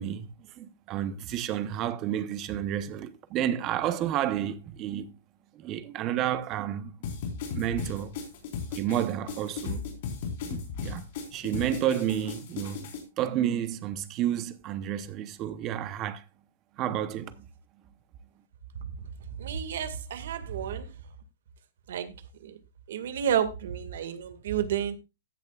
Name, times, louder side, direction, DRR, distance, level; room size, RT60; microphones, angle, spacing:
voice 1, 0.0-5.1 5.5-6.9 7.6-8.2 8.7-9.9 10.4-11.0 11.3-12.9 13.2-16.2 16.8-17.5, right 11 dB, 25° right, 0.8 m, -31 dB
sound 1, 7.0-13.0, left 5 dB, 45° left, 4.2 m, -36 dB
voice 2, 19.4-20.9 21.9-22.1 22.4-22.6 22.9-25.0, right 9 dB, 65° right, 1.9 m, -30 dB
15.0 x 10.5 x 2.4 m
supercardioid pair, 175°, 0 cm